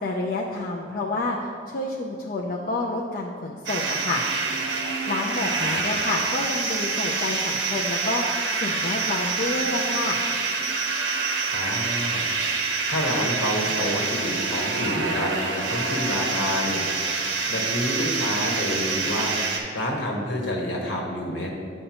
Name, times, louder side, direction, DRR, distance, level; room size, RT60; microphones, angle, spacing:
voice 1, 0.0-4.2 5.1-8.2 8.6-10.2, left 2 dB, 50° left, -1 dB, 0.5 m, -29 dB
sound 1, 3.7-19.6, right 4 dB, 80° right, 0.9 m, -26 dB
voice 2, 5.4-5.8 11.5-12.2 12.9-16.8 17.5-21.5, left 1 dB, 85° left, -1 dB, 1.2 m, -28 dB
9.4 x 5.5 x 2.9 m, 2.3 s
head